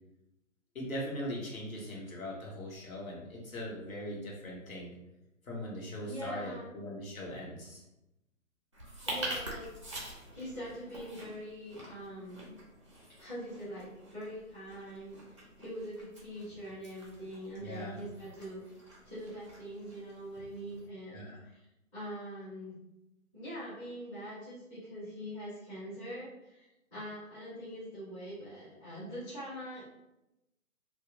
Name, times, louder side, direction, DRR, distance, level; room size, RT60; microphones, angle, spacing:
voice 1, 0.7-4.9 5.4-7.8 17.6-18.0 21.1-21.4, equal, 75° left, -3 dB, 1.0 m, -40 dB
voice 2, 6.0-6.7 9.0-12.5 13.1-18.6 19.1-21.6 21.9-22.7 23.3-29.8, equal, 15° left, -11 dB, 0.7 m, -43 dB
sound 1, 8.7-20.9, right 1 dB, 25° right, 0.4 m, -46 dB
2.8 x 2.1 x 2.4 m, 0.91 s
figure-of-eight pair, 140°, 41 cm